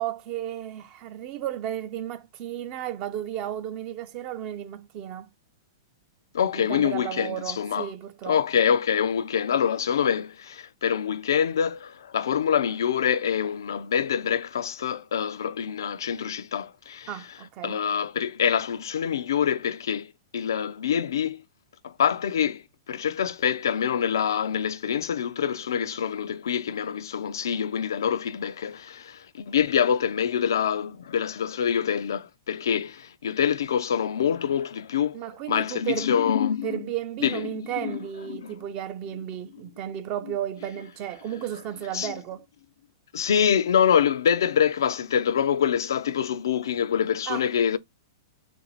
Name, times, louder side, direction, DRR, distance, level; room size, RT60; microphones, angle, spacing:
voice 1, 0.0-5.3 6.5-8.4 17.1-17.8 35.1-36.1 36.6-42.4 47.3-47.4, right 11 dB, 40° right, 0.5 m, -33 dB
voice 2, 6.3-7.9 8.3-17.1 17.6-21.4 21.8-36.9 37.2-38.5 41.9-42.1 43.1-47.8, left 8 dB, 80° left, 0.3 m, -25 dB
3.2 x 2.5 x 3.0 m
hypercardioid pair, 130°, 2 cm